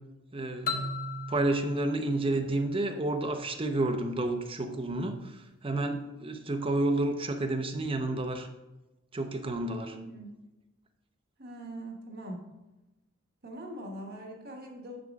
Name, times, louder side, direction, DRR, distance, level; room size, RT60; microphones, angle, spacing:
voice 1, 0.3-0.9 1.3-8.5 9.1-9.9, right 2 dB, 25° right, 6 dB, 0.7 m, -30 dB
sound 1, 0.7-3.4, left 3 dB, 45° left, 0.8 m, -37 dB
voice 2, 9.9-10.3 11.4-12.4 13.4-15.0, right 1 dB, 50° right, 1 dB, 1.3 m, -42 dB
8.4 x 6.3 x 3.5 m, 1.0 s
head